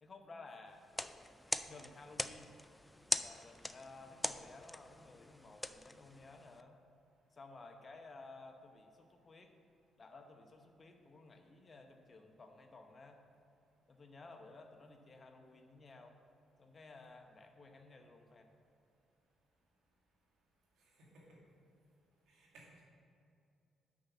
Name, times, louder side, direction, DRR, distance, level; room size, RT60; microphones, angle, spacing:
voice 1, 0.0-0.9 1.7-2.5 3.2-6.8 7.3-9.5 10.0-13.2 13.9-16.2 16.6-18.5, left 3 dB, 35° left, 4 dB, 0.9 m, -55 dB
sound 1, 0.8-6.6, left 1 dB, 10° left, 0.3 m, -42 dB
voice 2, 20.8-21.4 22.3-22.8, right 1 dB, 85° right, -3 dB, 2.2 m, -61 dB
6.3 x 5.7 x 7.1 m, 2.6 s
cardioid pair, 90°, 0 cm